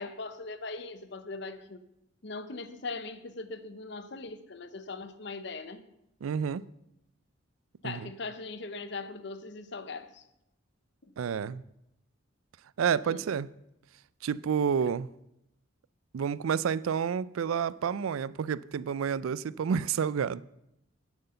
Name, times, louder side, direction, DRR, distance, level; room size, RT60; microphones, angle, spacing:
voice 1, 0.0-1.8 2.2-5.8 7.8-10.2 11.0-11.1 13.0-13.2 14.8-14.9, left 3 dB, 55° left, 0.8 m, -40 dB
voice 2, 6.2-6.6 7.8-8.1 11.2-11.6 12.8-13.5 14.2-15.1 16.1-20.4, right 7 dB, 85° right, 0.4 m, -29 dB
10.5 x 8.0 x 6.8 m
head